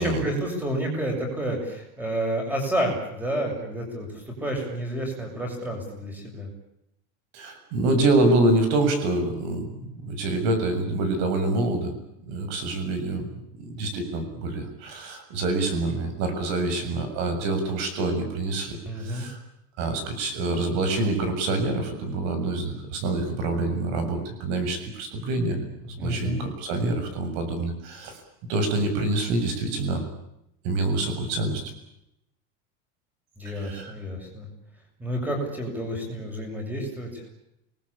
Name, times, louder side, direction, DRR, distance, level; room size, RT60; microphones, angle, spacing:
voice 1, 0.0-6.5 18.9-19.3 26.0-26.4 33.4-34.5 35.0-37.2, right 1 dB, 5° right, 2 dB, 7.4 m, -30 dB
voice 2, 7.3-11.9 12.2-13.3 13.6-19.4 19.8-28.2 28.5-30.0 30.6-31.6 33.5-33.9, right 2 dB, 45° right, 8 dB, 7.2 m, -26 dB
29.5 x 21.0 x 8.8 m, 0.82 s
supercardioid pair, 175°, 37 cm